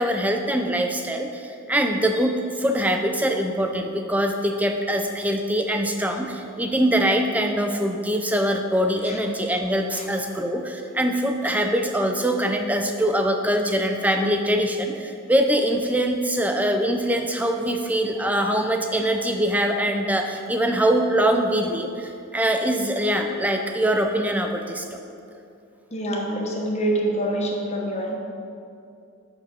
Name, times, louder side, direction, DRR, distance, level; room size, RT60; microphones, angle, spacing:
voice 1, 0.0-24.9, right 1 dB, 5° right, 4 dB, 0.4 m, -23 dB
voice 2, 25.9-28.1, right 1 dB, 30° left, 0 dB, 1.0 m, -26 dB
6.0 x 5.7 x 6.6 m, 2.5 s
head